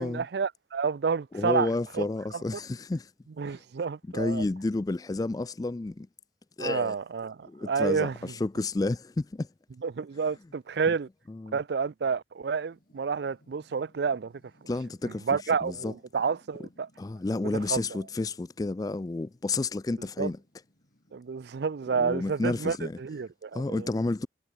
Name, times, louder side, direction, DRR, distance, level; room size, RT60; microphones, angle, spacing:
voice 1, 0.0-1.7 1.9-2.0 3.4-4.4 6.6-8.3 9.8-11.1 11.5-14.3 15.0-16.9 17.7-17.8 20.2-20.3 21.1-23.9, right 5 dB, 65° right, 0.4 m, -29 dB
voice 2, 1.3-3.1 3.5-3.6 4.1-6.1 6.6-7.0 7.5-9.5 11.3-11.6 14.7-15.3 15.6-15.9 17.0-20.4 22.0-23.0 23.5-24.3, left 2 dB, 20° left, 0.3 m, -31 dB
sound 1, 12.5-23.0, equal, 50° left, 5.9 m, -65 dB
head